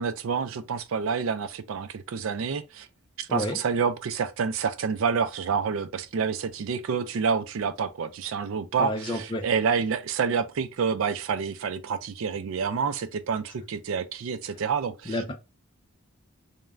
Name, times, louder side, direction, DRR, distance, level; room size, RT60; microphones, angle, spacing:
voice 1, 0.0-2.9 3.2-15.1, right 6 dB, 70° right, 0.4 m, -28 dB
voice 2, 3.3-3.6 8.8-9.5 15.1-15.3, left 1 dB, 20° left, 0.5 m, -30 dB
3.2 x 2.2 x 2.3 m
head